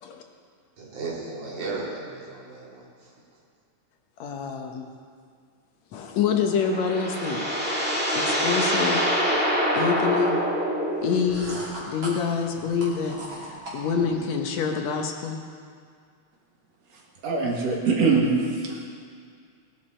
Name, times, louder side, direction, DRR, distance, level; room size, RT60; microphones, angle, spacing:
voice 1, 0.8-3.1, right 3 dB, 80° right, -5 dB, 4.2 m, -35 dB
voice 2, 4.2-4.9 5.9-7.7 8.1-9.0 9.7-10.4 11.0-11.6 11.9-15.4, left 6 dB, 70° left, 3 dB, 2.1 m, -27 dB
sound 1, 6.3-11.5, equal, 5° right, 1.5 m, -25 dB
sound 2, 11.0-14.3, right 1 dB, 35° right, 3.3 m, -38 dB
voice 3, 17.2-18.3 18.6-18.9, right 4 dB, 60° right, -2 dB, 3.0 m, -23 dB
18.5 x 11.5 x 4.4 m, 2.1 s
omnidirectional pair, 3.4 m